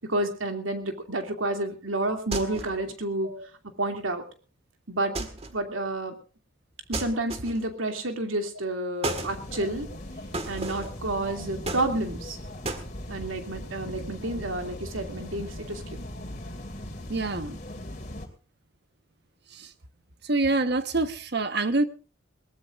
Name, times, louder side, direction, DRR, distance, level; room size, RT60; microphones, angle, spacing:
voice 1, 0.0-3.3 3.8-4.2 4.9-6.2 6.9-9.9 10.5-12.4 13.1-15.8, right 2 dB, 85° right, 5 dB, 2.7 m, -30 dB
sound 1, 2.3-2.8 5.1-5.6 6.9-7.7 9.0-9.4 10.3-11.0 11.6-12.3 12.6-12.9, right 2 dB, 30° right, 1.8 m, -33 dB
sound 2, 9.0-18.3, left 1 dB, 40° left, 2.7 m, -39 dB
voice 2, 17.1-17.6 20.3-21.8, right 2 dB, 55° right, 10 dB, 1.2 m, -26 dB
21.5 x 18.5 x 2.5 m, 0.36 s
head